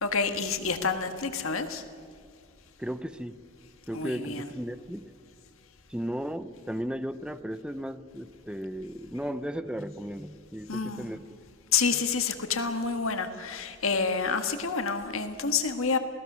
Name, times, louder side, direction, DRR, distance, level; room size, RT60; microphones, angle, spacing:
voice 1, 0.0-1.8 3.9-4.5 10.7-11.1 11.7-16.0, left 5 dB, 75° left, 7 dB, 1.6 m, -28 dB
voice 2, 2.8-3.4 3.9-5.0 5.9-11.3 11.9-12.0, equal, 5° right, 12 dB, 0.7 m, -35 dB
28.0 x 18.0 x 6.2 m, 2.1 s
head